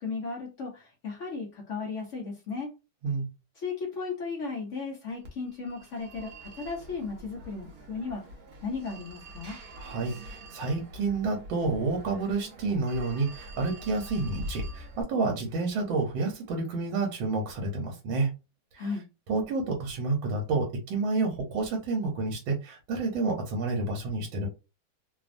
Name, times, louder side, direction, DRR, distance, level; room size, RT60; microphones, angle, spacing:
voice 1, 0.0-2.7 3.6-8.3 8.6-9.6 18.8-19.0, left 4 dB, 70° left, 0.7 m, -35 dB
Telephone, 5.2-15.0, equal, 60° right, 1.1 m, -44 dB
voice 2, 9.8-18.3 18.7-18.9 19.3-24.5, right 3 dB, 75° right, 1.5 m, -29 dB
3.3 x 2.0 x 2.5 m
omnidirectional pair, 2.2 m